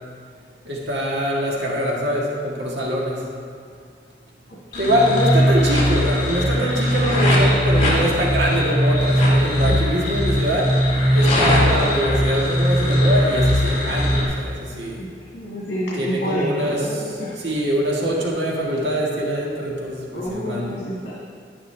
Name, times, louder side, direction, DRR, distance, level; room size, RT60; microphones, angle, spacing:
voice 1, 0.6-3.3 4.8-10.8 11.1-15.0 16.0-20.8, equal, 75° right, -3 dB, 1.7 m, -23 dB
voice 2, 4.7-5.1 9.6-10.1 15.0-15.1 15.3-17.5 20.1-21.1, equal, 70° left, -6 dB, 1.9 m, -29 dB
sound 1, 4.7-14.2, equal, 35° left, 2.7 m, -19 dB
10.5 x 10.5 x 3.3 m, 2.2 s
head